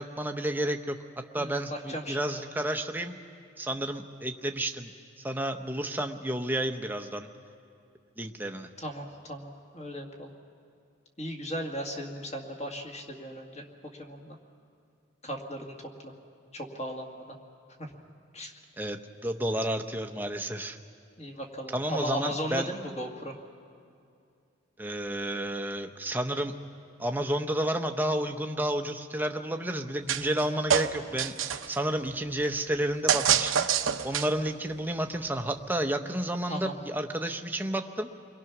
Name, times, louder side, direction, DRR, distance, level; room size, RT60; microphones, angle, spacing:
voice 1, 0.0-3.2 3.6-4.9 5.2-7.3 8.2-8.7 18.8-20.8 21.7-22.7 24.8-26.5 27.0-31.3 31.7-33.7 34.0-38.1, right 1 dB, 10° right, 5 dB, 0.9 m, -31 dB
voice 2, 1.4-2.2 8.8-10.3 11.2-13.6 14.0-14.4 15.2-15.7 16.0-16.1 16.5-17.2 17.8-17.9 18.3-18.5 21.2-23.4 36.5-36.7, equal, 30° left, 1 dB, 2.0 m, -36 dB
sound 1, 30.1-30.4 30.7-31.8 33.1-34.5, right 8 dB, 80° right, 0.9 m, -26 dB
29.5 x 22.0 x 6.0 m, 2.4 s
head